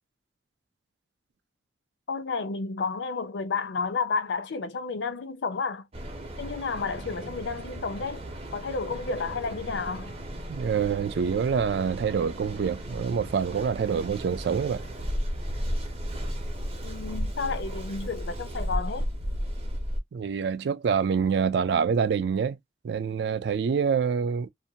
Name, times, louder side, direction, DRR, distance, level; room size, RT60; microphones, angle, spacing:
voice 1, 2.1-5.8 6.4-8.2 8.5-10.1 16.8-19.1, left 4 dB, 80° left, 0.5 m, -31 dB
Mechanical fan, 5.9-20.0, equal, 35° right, 0.6 m, -34 dB
voice 2, 10.5-14.8 20.1-22.6 22.8-24.5, right 6 dB, 70° right, 0.3 m, -26 dB
2.6 x 2.2 x 2.6 m
head